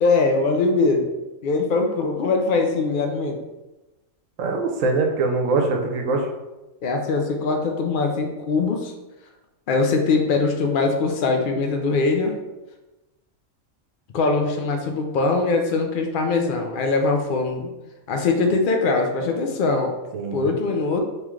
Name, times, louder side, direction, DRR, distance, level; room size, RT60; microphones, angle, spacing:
voice 1, 0.0-1.1 1.4-3.4 6.8-8.9 9.7-12.3 14.1-17.7 18.1-19.9 20.3-21.0, left 3 dB, 80° left, 3 dB, 0.4 m, -22 dB
voice 2, 4.4-6.3 20.1-20.5, right 3 dB, 70° right, 2 dB, 1.0 m, -23 dB
3.1 x 3.0 x 3.6 m, 1.1 s
omnidirectional pair, 1.4 m